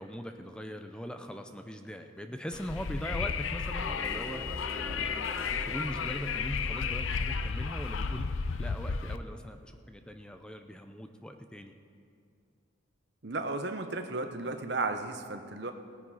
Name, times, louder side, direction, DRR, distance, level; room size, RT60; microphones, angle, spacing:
voice 1, 0.0-4.4 5.0-8.3 8.6-11.7, equal, 5° left, 6 dB, 0.5 m, -41 dB
Wind, 2.5-9.2, left 5 dB, 80° left, 0.6 m, -33 dB
sound 1, 3.8-7.7, left 1 dB, 20° right, 0.9 m, -43 dB
voice 2, 13.2-15.7, right 3 dB, 55° right, 7 dB, 0.9 m, -34 dB
18.0 x 9.4 x 4.9 m, 2.4 s
head